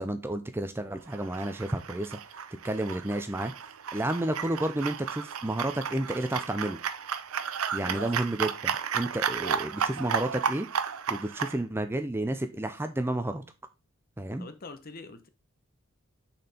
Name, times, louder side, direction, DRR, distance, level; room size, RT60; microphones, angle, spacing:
voice 1, 0.0-2.4 2.6-3.5 3.9-6.8 7.7-10.7 11.1-13.4 14.2-14.5, right 1 dB, 10° right, 0.4 m, -31 dB
sound 1, 1.1-11.6, right 7 dB, 80° right, 0.6 m, -33 dB
voice 2, 14.4-15.3, left 3 dB, 45° left, 0.8 m, -44 dB
6.4 x 4.3 x 4.1 m
head